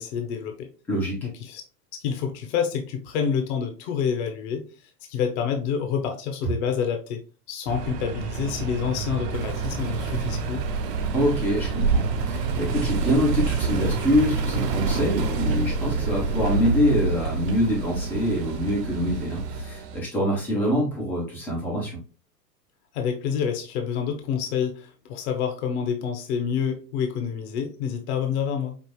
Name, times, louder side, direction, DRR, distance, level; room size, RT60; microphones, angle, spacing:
voice 1, 0.0-0.7 1.2-1.6 1.9-4.6 5.1-10.6 22.9-28.8, left 7 dB, 45° left, 6 dB, 0.8 m, -28 dB
sound 1, 7.7-20.0, right 5 dB, 35° right, 0.6 m, -33 dB
sound 2, 9.3-19.6, right 4 dB, 75° right, 1.1 m, -28 dB
voice 2, 11.1-22.0, equal, 5° left, -3 dB, 0.3 m, -25 dB
5.3 x 2.4 x 3.0 m, 0.34 s
hypercardioid pair, 125°, 49 cm